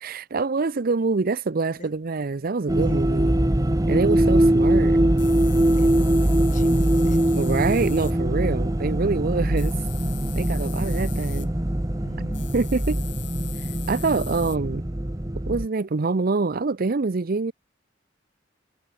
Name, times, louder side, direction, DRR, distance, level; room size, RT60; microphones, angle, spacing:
voice 1, 0.0-3.3 3.9-5.0 7.3-9.8 10.3-11.5 12.5-13.0 13.9-14.8 15.5-17.5, right 3 dB, 50° right, 0.6 m, -25 dB
sound 1, 2.2-2.3 2.7-2.8 3.3-3.4 3.8-3.9 5.2-8.1 9.4-11.5 12.3-14.6, left 16 dB, 65° left, 7.5 m, -42 dB
voice 2, 2.7-3.2 4.0-4.3 5.7-7.7 12.0-12.5, left 1 dB, 40° left, 6.0 m, -43 dB
sound 2, 2.7-15.6, right 1 dB, 20° right, 0.9 m, -22 dB
head